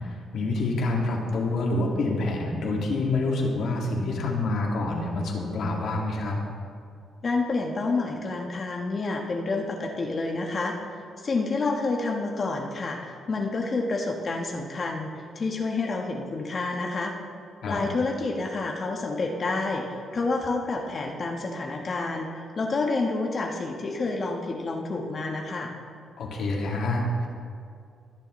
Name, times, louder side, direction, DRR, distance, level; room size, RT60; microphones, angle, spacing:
voice 1, 0.0-6.4 17.6-17.8 26.2-27.3, left 2 dB, 70° left, -1 dB, 2.0 m, -27 dB
voice 2, 7.2-10.7 11.2-17.1 17.7-25.7, left 3 dB, 40° left, 1 dB, 1.2 m, -29 dB
18.5 x 7.0 x 3.1 m, 2.3 s
cardioid pair, 90°, 0 cm